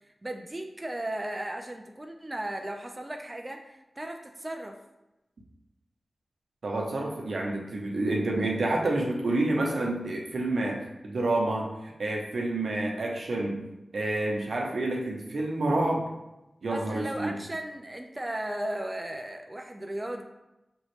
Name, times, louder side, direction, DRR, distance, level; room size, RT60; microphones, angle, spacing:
voice 1, 0.0-4.8 16.7-20.2, right 1 dB, 25° right, 3 dB, 0.4 m, -36 dB
voice 2, 6.6-11.7 12.0-13.6 13.9-16.0 16.6-17.4, right 2 dB, 75° right, -1 dB, 0.9 m, -28 dB
5.4 x 3.0 x 3.1 m, 0.95 s
cardioid pair, 55°, 0 cm